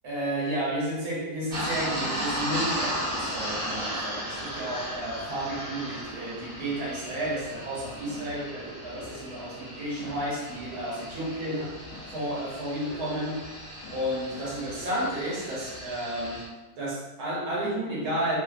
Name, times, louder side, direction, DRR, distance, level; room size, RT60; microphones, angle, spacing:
voice 1, 0.0-11.8 12.1-13.5 13.9-16.5 16.8-18.4, right 1 dB, 65° right, -6 dB, 1.3 m, -32 dB
sound 1, 1.5-16.4, equal, 35° right, 0.8 m, -36 dB
sound 2, 8.1-15.7, left 3 dB, 65° left, 0.9 m, -48 dB
3.2 x 2.3 x 2.4 m, 1.2 s
omnidirectional pair, 2.0 m